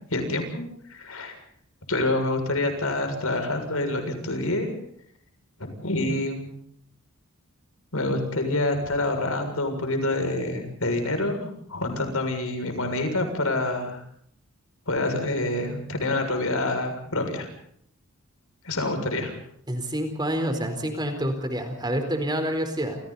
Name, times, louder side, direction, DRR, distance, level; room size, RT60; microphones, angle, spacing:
voice 1, 0.1-0.6 0.9-1.4 1.9-4.7 5.8-6.5 7.9-14.0 14.9-17.5 18.6-19.4, left 2 dB, 75° left, 5 dB, 6.9 m, -27 dB
voice 2, 19.7-23.0, equal, 20° right, 6 dB, 4.3 m, -27 dB
29.0 x 28.5 x 4.2 m, 0.68 s
head